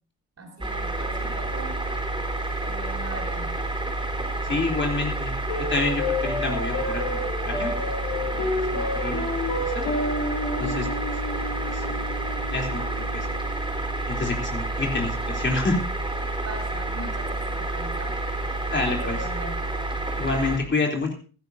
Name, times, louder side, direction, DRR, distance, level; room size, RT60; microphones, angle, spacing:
voice 1, 0.4-1.8 2.6-3.6 16.4-18.1 18.7-19.6, right 2 dB, 35° right, 2 dB, 6.1 m, -39 dB
sound 1, 0.6-20.6, right 2 dB, 10° right, 4.0 m, -29 dB
voice 2, 4.4-5.3 5.7-7.7 8.4-9.2 9.6-9.8 10.6-10.9 11.7-12.0 12.5-13.3 14.1-15.8 18.7-19.2 20.1-21.1, left 3 dB, 25° left, 1 dB, 3.4 m, -28 dB
sound 2, 5.5-14.1, left 2 dB, 50° left, 8.0 m, -31 dB
16.5 x 15.5 x 2.7 m, 0.37 s
figure-of-eight pair, 45°, 43 cm